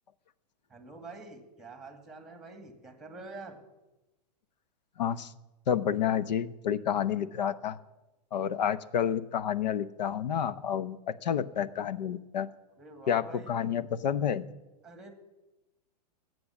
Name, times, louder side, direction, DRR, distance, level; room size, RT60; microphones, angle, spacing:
voice 1, 0.7-3.6 12.8-13.6 14.8-15.1, right 3 dB, ahead, 7 dB, 2.2 m, -46 dB
voice 2, 5.0-5.3 5.7-7.8 8.3-12.5 13.1-14.5, left 9 dB, 85° left, 15 dB, 0.8 m, -29 dB
18.0 x 7.9 x 7.2 m, 1.0 s
hypercardioid pair, 135°, 21 cm